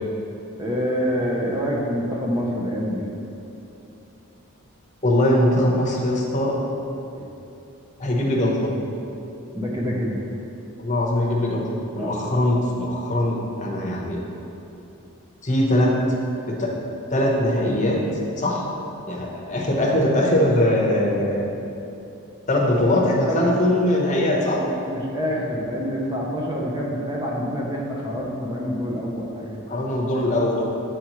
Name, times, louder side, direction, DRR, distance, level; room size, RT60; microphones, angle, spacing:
voice 1, 0.6-3.1 7.2-7.3 9.5-10.2 12.0-12.2 23.3-23.5 24.9-29.7, equal, 20° right, -3 dB, 0.7 m, -26 dB
voice 2, 5.0-6.6 8.0-8.8 10.8-14.2 15.4-16.0 16.5-16.7 17.1-18.0 18.4-18.6 19.1-21.4 22.5-24.6 29.7-30.6, left 1 dB, 35° left, -3 dB, 0.9 m, -21 dB
7.9 x 4.7 x 3.0 m, 2.8 s
head